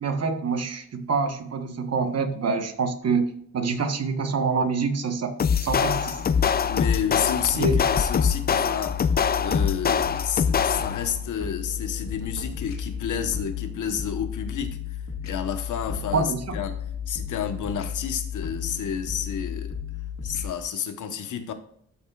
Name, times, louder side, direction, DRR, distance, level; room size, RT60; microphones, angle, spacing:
voice 1, 0.0-5.3 5.6-6.2 7.6-7.8 16.1-16.6, right 4 dB, 55° right, 1.2 m, -26 dB
sound 1, 5.4-20.5, left 8 dB, 60° left, 2.0 m, -34 dB
sound 2, 5.4-11.1, left 7 dB, 35° left, 0.4 m, -24 dB
voice 2, 6.2-14.8 15.2-19.7 20.2-21.5, left 8 dB, 85° left, 1.1 m, -31 dB
13.0 x 5.5 x 2.4 m
wide cardioid pair, 135°, 30 cm